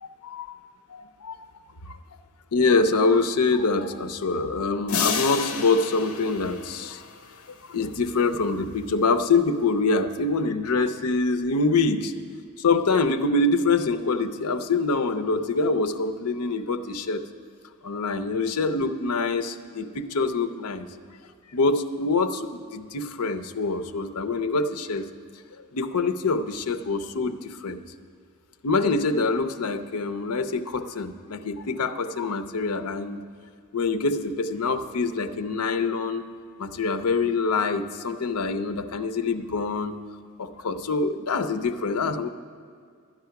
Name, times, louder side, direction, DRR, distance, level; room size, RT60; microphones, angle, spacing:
voice 1, 0.0-0.5 0.9-1.5 1.9-2.0 2.5-7.0 7.5-12.1 12.6-17.2 17.8-20.9 21.5-25.1 25.7-27.8 28.6-33.2 33.7-36.2 36.6-40.0 40.4-42.3, left 3 dB, 90° left, 10 dB, 0.7 m, -25 dB
sound 1, 4.9-7.4, left 6 dB, 70° left, 0.9 m, -30 dB
12.0 x 9.0 x 5.8 m, 2.1 s
head